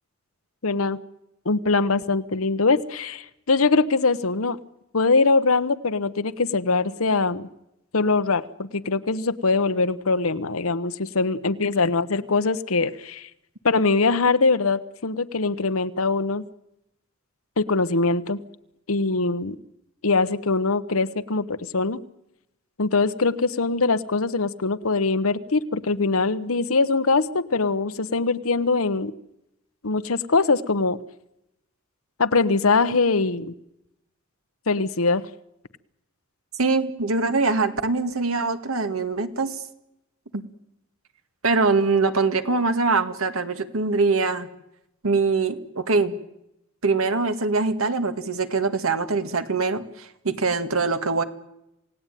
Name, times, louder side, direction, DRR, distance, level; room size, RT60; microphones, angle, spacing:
voice 1, 0.6-1.0 1.4-4.6 4.9-7.5 7.9-13.3 13.6-16.4 17.6-18.4 18.9-19.5 20.0-22.0 22.8-29.1 29.8-31.0 32.2-33.5 34.7-35.2, left 3 dB, 85° left, 11 dB, 1.1 m, -22 dB
voice 2, 36.6-39.6 40.3-40.4 41.4-44.5 45.0-46.2 46.8-51.2, right 3 dB, 80° right, 9 dB, 1.9 m, -23 dB
28.0 x 17.5 x 9.2 m, 0.86 s
head